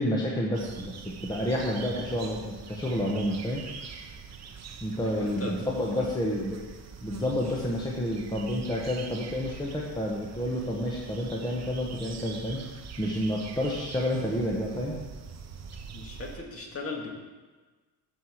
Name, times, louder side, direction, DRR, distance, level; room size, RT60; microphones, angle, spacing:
voice 1, 0.0-3.6 4.8-6.6 7.0-12.6 13.0-15.0, left 1 dB, 10° left, -3 dB, 1.1 m, -29 dB
sound 1, 0.5-16.4, right 6 dB, 40° right, 0.9 m, -44 dB
voice 2, 5.0-6.1 7.6-7.7 15.9-17.1, left 3 dB, 35° left, 0 dB, 2.0 m, -38 dB
8.9 x 4.9 x 7.7 m, 1.3 s
cardioid pair, 125°, 40 cm